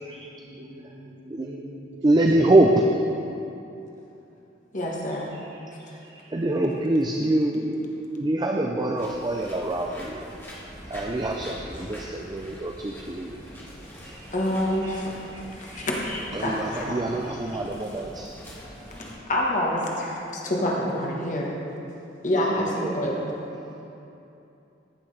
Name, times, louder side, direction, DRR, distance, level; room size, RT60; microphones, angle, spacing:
voice 1, 0.0-2.5, equal, 65° right, -2 dB, 1.4 m, -42 dB
voice 2, 2.0-2.8 5.8-10.2 10.9-13.3 14.0-14.3 14.8-15.0 15.3-15.9 16.3-18.3 22.8-23.0, right 1 dB, 20° right, 1 dB, 0.4 m, -25 dB
voice 3, 4.7-5.3 14.3-15.1 15.5-17.0 17.3-17.4 18.9-21.5 22.2-23.3, left 1 dB, 45° left, -2 dB, 1.3 m, -27 dB
sound 1, 9.0-19.1, equal, 10° left, 1.4 m, -43 dB
14.5 x 6.3 x 3.3 m, 2.8 s
head